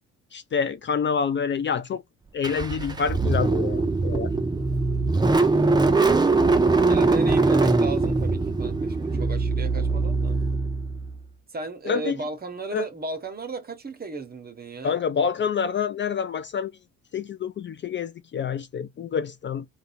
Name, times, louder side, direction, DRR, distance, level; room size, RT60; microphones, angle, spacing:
voice 1, 0.3-2.0 2.3-4.3 11.8-12.2 12.7-12.8 14.8-16.7 17.1-19.7, left 6 dB, 40° left, 0.4 m, -27 dB
Car / Engine starting, 2.4-11.2, right 3 dB, 15° right, 0.6 m, -22 dB
voice 2, 6.9-10.4 11.5-15.0, right 4 dB, 30° right, 1.1 m, -35 dB
3.9 x 2.4 x 4.1 m
cardioid pair, 90°, 30 cm